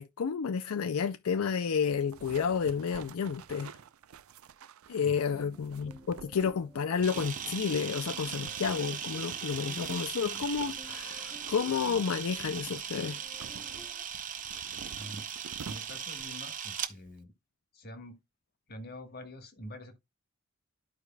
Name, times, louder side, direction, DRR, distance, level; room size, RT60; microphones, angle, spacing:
voice 1, 0.0-3.7 4.9-13.2, left 6 dB, 80° left, 0.4 m, -31 dB
sound 1, 1.9-16.3, right 6 dB, 80° right, 0.5 m, -49 dB
sound 2, 5.3-14.0, equal, ahead, 0.5 m, -54 dB
Camera, 7.0-16.9, right 8 dB, 40° right, 0.8 m, -39 dB
voice 2, 14.9-15.3 15.6-17.3 17.7-18.2 18.7-20.0, left 1 dB, 50° left, 1.4 m, -46 dB
13.0 x 4.7 x 2.2 m
head